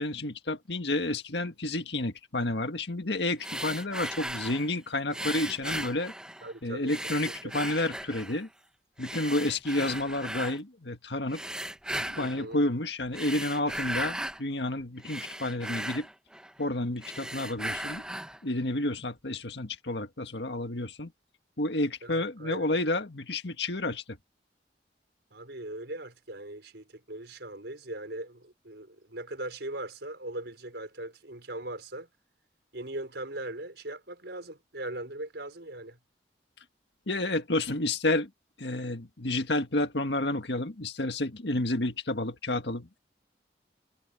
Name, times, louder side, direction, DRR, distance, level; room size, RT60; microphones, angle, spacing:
voice 1, 0.0-6.1 6.6-8.5 9.0-11.4 12.0-16.1 16.6-18.0 18.4-21.1 21.6-24.2 37.1-38.3 38.6-43.0, left 2 dB, 75° left, 1.8 m, -30 dB
sound 1, 3.4-4.7 5.1-6.5 6.9-8.4 9.0-10.6 11.3-12.4 13.0-14.4 14.8-16.7 17.0-18.4, right 1 dB, 5° right, 0.8 m, -37 dB
voice 2, 6.4-6.9 7.2-7.5 12.1-12.6 22.0-22.7 25.3-32.1 32.7-36.0, right 1 dB, 70° right, 4.9 m, -40 dB
head